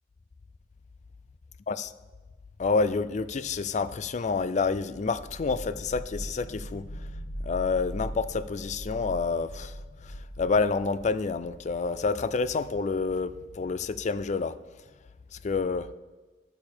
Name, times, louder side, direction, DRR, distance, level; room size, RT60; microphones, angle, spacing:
voice 1, 2.6-6.8 7.5-9.7 10.4-14.5 15.4-15.9, left 4 dB, 40° left, 14 dB, 0.4 m, -28 dB
sound 1, 5.1-11.9, equal, 75° left, 1.1 m, -40 dB
13.0 x 6.8 x 4.4 m, 1.3 s
head